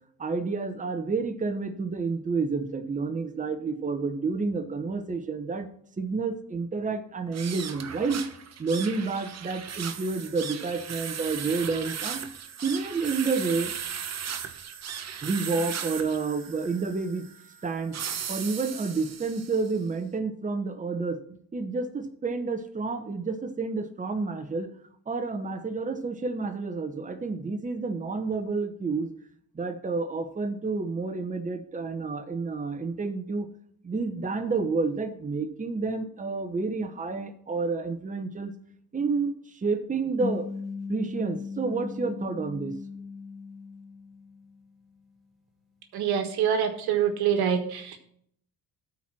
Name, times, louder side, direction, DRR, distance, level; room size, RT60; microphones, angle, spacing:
voice 1, 0.2-5.7 6.0-8.2 8.6-12.2 12.6-13.7 15.2-17.3 17.6-18.0 18.3-21.2 21.5-24.7 25.1-29.1 29.5-33.5 33.8-38.5 38.9-40.5 40.9-42.7, right 4 dB, 20° right, 7 dB, 1.0 m, -29 dB
sound 1, 7.3-19.8, right 7 dB, 40° right, 1.1 m, -37 dB
sound 2, 40.2-44.8, left 5 dB, ahead, 2.6 m, -38 dB
voice 2, 45.9-48.0, right 8 dB, 70° right, 5 dB, 1.5 m, -25 dB
13.0 x 4.6 x 6.0 m, 0.66 s
supercardioid pair, 90°, 39 cm